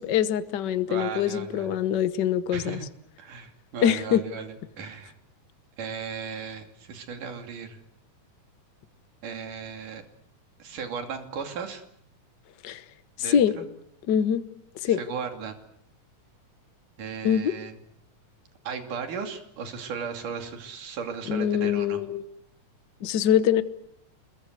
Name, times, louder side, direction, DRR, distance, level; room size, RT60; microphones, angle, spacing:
voice 1, 0.0-2.8 3.8-4.2 12.6-12.8 13.2-13.6 14.1-14.5 14.7-15.0 17.2-17.6 21.3-22.2 23.0-23.6, left 9 dB, 80° left, 0.9 m, -24 dB
voice 2, 0.9-1.8 2.5-2.9 3.2-5.1 5.8-7.8 9.2-10.0 10.6-11.8 13.2-13.6 14.9-15.6 17.0-17.8 18.6-22.0, right 6 dB, 80° right, 4.2 m, -36 dB
26.0 x 22.0 x 8.1 m
omnidirectional pair, 3.6 m